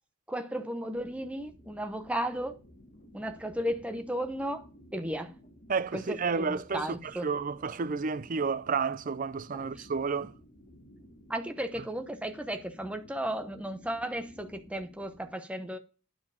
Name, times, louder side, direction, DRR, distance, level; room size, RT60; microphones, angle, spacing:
voice 1, 0.3-2.5 3.1-4.7 4.9-5.3 5.9-7.3 9.5-9.9 11.3-15.8, right 1 dB, 5° right, 0.8 m, -34 dB
sound 1, 0.9-15.3, equal, 40° left, 2.9 m, -55 dB
voice 2, 5.7-10.3, right 5 dB, 40° right, 0.5 m, -31 dB
9.7 x 4.6 x 7.0 m
head